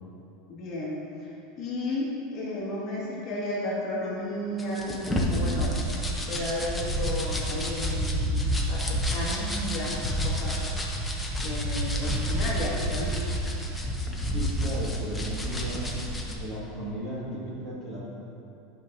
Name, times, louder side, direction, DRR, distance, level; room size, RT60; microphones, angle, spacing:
voice 1, 0.5-5.8 6.3-10.6 11.4-13.2, left 1 dB, 35° left, -6 dB, 1.8 m, -33 dB
sound 1, 4.6-16.3, equal, 5° left, 0.7 m, -29 dB
voice 2, 14.3-18.0, equal, 20° right, -7 dB, 1.7 m, -36 dB
11.0 x 6.0 x 2.6 m, 2.8 s
supercardioid pair, 160°, 0 cm